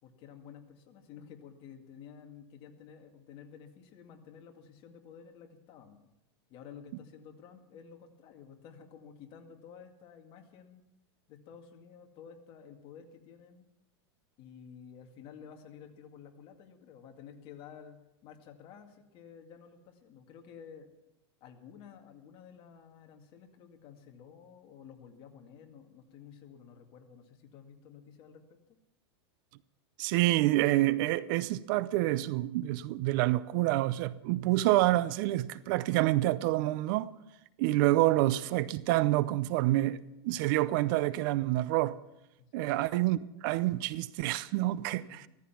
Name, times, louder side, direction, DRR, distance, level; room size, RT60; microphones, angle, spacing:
voice 1, 0.0-6.0 6.5-10.8 11.3-13.7 14.4-20.9 21.4-28.6 42.5-42.9 45.0-45.2, left 7 dB, 40° left, 2.1 m, -52 dB
voice 2, 30.0-37.1 37.6-42.0 42.5-45.3, right 16 dB, 50° right, 0.6 m, -28 dB
15.5 x 14.0 x 5.9 m
supercardioid pair, 140°, 14 cm